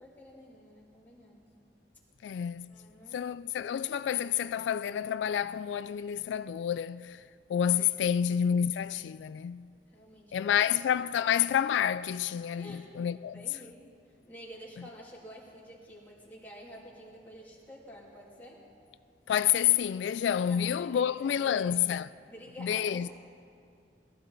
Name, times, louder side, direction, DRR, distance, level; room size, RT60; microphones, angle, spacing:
voice 1, 0.0-1.4 2.7-3.2 9.9-10.3 10.6-10.8 12.6-12.9 13.2-18.6 20.5-21.8 22.3-23.1, equal, 10° left, 3.0 m, -50 dB
voice 2, 2.2-2.8 3.1-7.2 7.5-9.7 10.3-13.4 19.3-22.1 22.6-23.1, left 9 dB, 90° left, 0.3 m, -29 dB
21.5 x 13.5 x 4.0 m
head